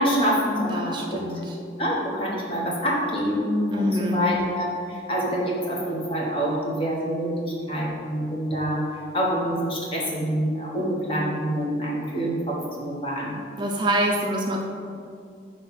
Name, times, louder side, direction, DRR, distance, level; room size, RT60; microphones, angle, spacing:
voice 1, 0.0-1.2 1.8-8.8 9.1-13.4, equal, 30° left, -3 dB, 1.1 m, -26 dB
voice 2, 0.7-1.5 3.7-4.4 13.6-14.6, equal, 25° right, 0 dB, 0.4 m, -25 dB
5.9 x 3.2 x 5.6 m, 2.3 s
head